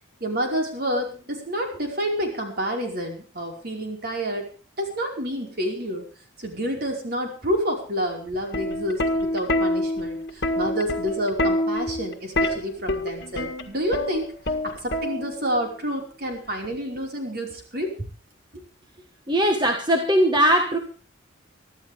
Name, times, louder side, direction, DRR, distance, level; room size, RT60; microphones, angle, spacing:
voice 1, 0.2-4.5 4.8-6.1 6.4-14.3 14.8-17.9 18.5-18.6, equal, 50° right, 2 dB, 5.1 m, -28 dB
Plucked string instrument, 8.3-15.6 16.6-17.0, left 1 dB, 55° left, 1.8 m, -26 dB
voice 2, 19.3-20.8, equal, 25° right, 3 dB, 1.6 m, -20 dB
24.0 x 13.0 x 3.6 m, 0.39 s
head